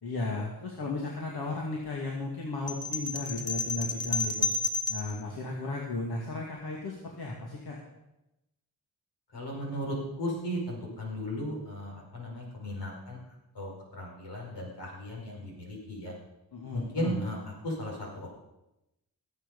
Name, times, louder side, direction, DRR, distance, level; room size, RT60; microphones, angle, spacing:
voice 1, 0.0-4.5 4.9-7.8 16.5-17.3, left 2 dB, 65° left, -2 dB, 2.3 m, -35 dB
sound 1, 2.7-5.1, left 3 dB, 35° left, 1.8 m, -31 dB
voice 2, 9.3-13.2 13.5-13.7 14.0-16.1 16.7-18.3, equal, 80° left, -2 dB, 5.3 m, -36 dB
19.0 x 7.9 x 5.4 m, 0.92 s
cardioid pair, 70°, 40 cm